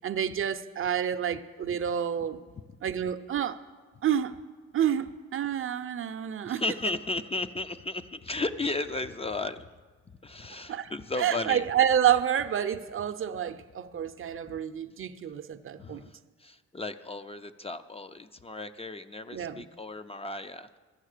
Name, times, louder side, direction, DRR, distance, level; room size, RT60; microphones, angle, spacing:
voice 1, 0.0-2.4 2.8-3.6 4.0-4.3 4.7-6.6 10.7-10.9 11.2-16.0 19.3-19.7, right 9 dB, 45° right, 0.6 m, -28 dB
voice 2, 6.4-9.7 10.2-11.7 15.8-20.8, left 2 dB, 20° left, 0.5 m, -35 dB
13.5 x 8.8 x 6.6 m
cardioid pair, 90°, 30 cm